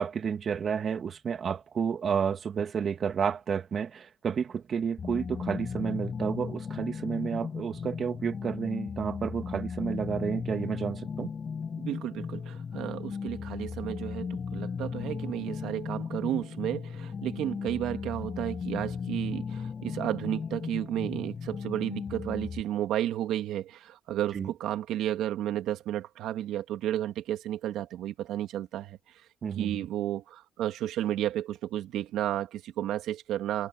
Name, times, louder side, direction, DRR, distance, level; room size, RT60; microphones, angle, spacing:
voice 1, 0.0-11.3 24.3-24.5 29.4-29.9, right 7 dB, 50° right, 2.0 m, -31 dB
sound 1, 5.0-22.6, left 6 dB, 40° left, 7.9 m, -36 dB
voice 2, 11.8-29.2 29.5-33.7, right 12 dB, 80° right, 2.1 m, -32 dB
cardioid pair, 90°, 0 cm